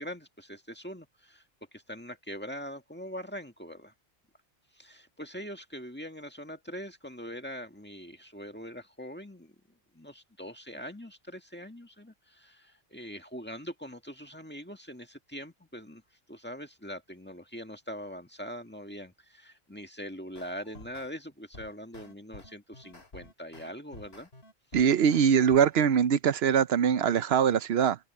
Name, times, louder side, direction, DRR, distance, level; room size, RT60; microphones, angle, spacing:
voice 1, 0.0-1.4 1.7-3.9 4.7-9.6 9.9-16.0 16.3-24.3, equal, 10° left, 1.8 m, -42 dB
sound 1, 20.3-21.1 21.5-26.0, left 1 dB, 85° left, 3.7 m, -51 dB
voice 2, 24.7-28.0, right 8 dB, 80° right, 0.9 m, -23 dB
omnidirectional pair, 1.0 m